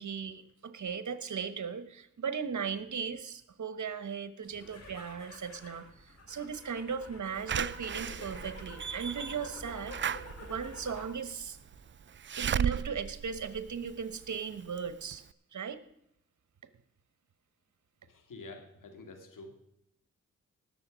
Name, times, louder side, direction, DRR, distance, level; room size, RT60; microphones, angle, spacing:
voice 1, 0.0-11.6 12.4-15.2 15.5-15.8, right 6 dB, 65° right, 12 dB, 1.1 m, -37 dB
sound 1, 4.4-11.2 11.5-12.1, left 1 dB, 55° left, 4.9 m, -48 dB
Slam / Alarm, 7.5-14.3 14.8-14.9 15.1-15.2, right 8 dB, 40° right, 0.4 m, -35 dB
voice 2, 18.0-19.6, left 2 dB, 80° left, 4 dB, 2.2 m, -48 dB
19.0 x 6.9 x 5.1 m, 0.79 s
cardioid pair, 50°, 32 cm